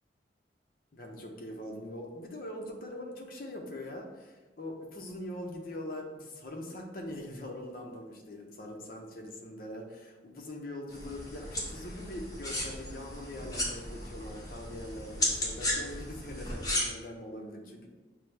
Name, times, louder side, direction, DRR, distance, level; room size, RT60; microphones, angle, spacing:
voice 1, 0.9-17.9, left 1 dB, 50° left, 2 dB, 0.6 m, -42 dB
sound 1, 10.9-16.8, left 1 dB, 20° left, 0.8 m, -35 dB
6.0 x 2.0 x 3.2 m, 1.2 s
head